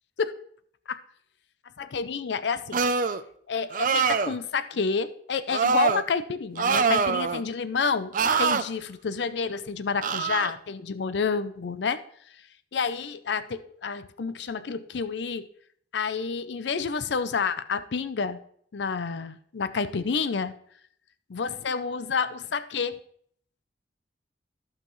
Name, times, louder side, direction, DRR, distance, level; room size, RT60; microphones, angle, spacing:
voice 1, 1.8-2.8 3.5-8.1 8.4-12.0 12.7-15.5 15.9-18.4 18.7-20.5 21.3-23.0, left 5 dB, 70° left, 13 dB, 0.5 m, -29 dB
Male Screams, 2.7-3.2 3.7-4.4 5.5-6.0 6.6-7.4 8.1-8.6 10.0-10.5, right 5 dB, 45° right, 0.5 m, -24 dB
14.5 x 5.7 x 3.1 m, 0.63 s
head